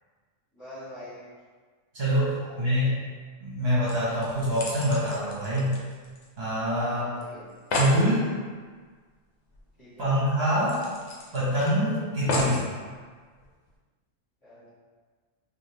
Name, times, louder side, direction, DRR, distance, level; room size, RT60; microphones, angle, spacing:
voice 1, 0.5-1.3 2.4-3.0 6.8-7.5 9.8-10.1 12.2-12.5 14.4-14.7, equal, 25° left, -13 dB, 1.4 m, -45 dB
voice 2, 1.9-2.9 3.4-5.8 6.4-7.1 7.8-8.3 10.0-10.8 11.3-12.6, equal, 55° right, -9 dB, 1.0 m, -25 dB
sound 1, 3.5-3.6 3.9-6.5 6.8-6.9 7.2-7.3 7.5-8.0 9.5-9.6 10.0-10.1 10.7-11.7 12.3-12.7 13.4-13.5, left 2 dB, 70° left, 0.9 m, -32 dB
3.3 x 2.4 x 2.7 m, 1.5 s
omnidirectional pair, 1.3 m